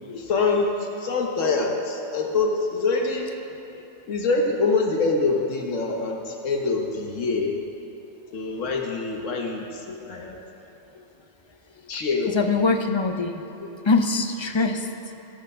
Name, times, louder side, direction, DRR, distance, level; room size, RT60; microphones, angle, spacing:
voice 1, 0.0-0.7 1.0-3.3 4.1-7.5 8.3-10.4 11.9-12.4, left 3 dB, 85° left, 0 dB, 1.4 m, -25 dB
voice 2, 12.3-14.9, left 3 dB, 35° left, 5 dB, 0.5 m, -23 dB
17.0 x 6.5 x 5.6 m, 3.0 s
omnidirectional pair, 1.3 m